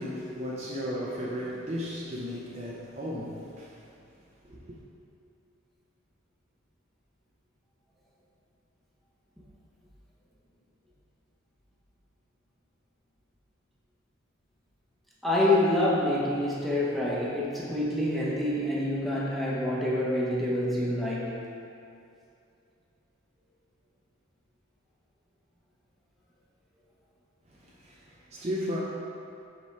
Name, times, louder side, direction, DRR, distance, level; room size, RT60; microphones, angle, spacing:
voice 1, 0.0-3.8 4.4-4.8 27.5-28.8, equal, 30° right, -4 dB, 0.6 m, -35 dB
voice 2, 15.2-21.3, left 1 dB, ahead, -6 dB, 0.9 m, -27 dB
6.1 x 5.3 x 3.4 m, 2.5 s
head